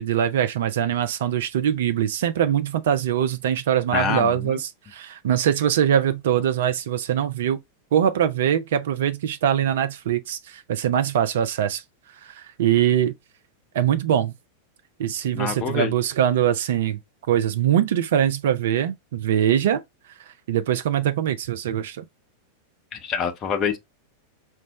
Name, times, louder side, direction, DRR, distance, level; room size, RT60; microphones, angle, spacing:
voice 1, 0.0-7.6 7.9-11.8 12.2-13.1 13.7-14.3 15.0-17.0 17.3-19.8 20.5-22.0, right 9 dB, 55° right, 0.3 m, -22 dB
voice 2, 3.9-4.6 15.3-15.9 22.9-23.8, left 6 dB, 30° left, 0.6 m, -26 dB
4.4 x 2.0 x 2.8 m
figure-of-eight pair, 90°, 0 cm